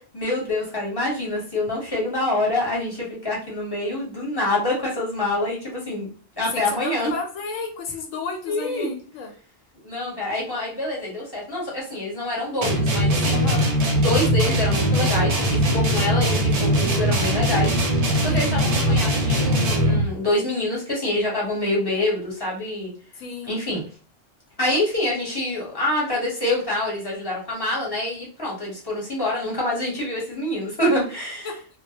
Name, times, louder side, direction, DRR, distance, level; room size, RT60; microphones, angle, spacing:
voice 1, 0.1-6.1 6.4-7.1 8.5-8.9 9.8-13.5 13.9-17.7 18.2-22.9 23.4-23.8 24.6-31.5, left 1 dB, 20° left, -5 dB, 0.9 m, -26 dB
voice 2, 6.5-9.3 13.3-13.6 18.3-18.5 23.2-23.6 31.4-31.5, left 4 dB, 85° left, 3 dB, 1.0 m, -32 dB
sound 1, 12.6-20.1, equal, 60° right, 0.4 m, -21 dB
2.2 x 2.1 x 2.8 m, 0.40 s
omnidirectional pair, 1.3 m